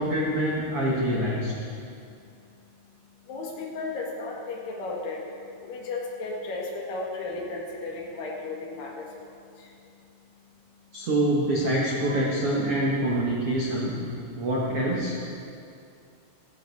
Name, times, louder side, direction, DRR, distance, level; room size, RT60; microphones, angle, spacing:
voice 1, 0.0-1.5 10.9-14.0 14.3-15.2, right 1 dB, 75° right, -4 dB, 1.3 m, -25 dB
voice 2, 3.3-5.2 5.7-8.9, left 3 dB, 70° left, -2 dB, 3.8 m, -34 dB
15.0 x 14.0 x 4.8 m, 2.5 s
omnidirectional pair, 5.1 m